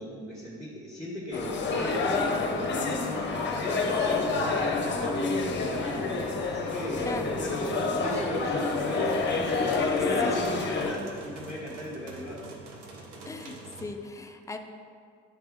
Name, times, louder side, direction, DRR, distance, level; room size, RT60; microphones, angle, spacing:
voice 1, 0.0-2.6 3.0-6.1 6.4-12.5, equal, 10° right, -7 dB, 1.1 m, -38 dB
sound 1, 1.3-10.9, left 3 dB, 30° left, 0.8 m, -28 dB
sound 2, 8.0-13.9, right 3 dB, 80° right, 0.8 m, -46 dB
voice 2, 13.3-14.6, left 3 dB, 10° left, 5 dB, 0.3 m, -37 dB
8.8 x 3.3 x 3.6 m, 2.2 s
figure-of-eight pair, 55°, 36 cm